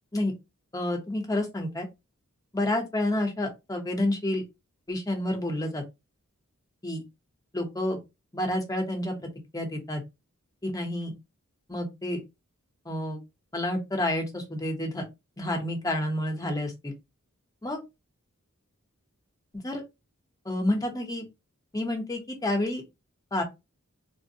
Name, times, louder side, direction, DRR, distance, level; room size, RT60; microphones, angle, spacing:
voice 1, 0.7-1.9 2.5-4.4 4.9-5.8 6.8-7.0 7.5-8.0 8.3-10.0 10.6-11.1 11.7-12.2 12.9-13.2 13.5-15.0 15.4-16.9 17.6-17.8 19.5-19.8 20.4-21.2 21.7-22.8 23.3-23.4, left 1 dB, 15° left, 0.8 m, -29 dB
3.3 x 2.1 x 2.7 m
head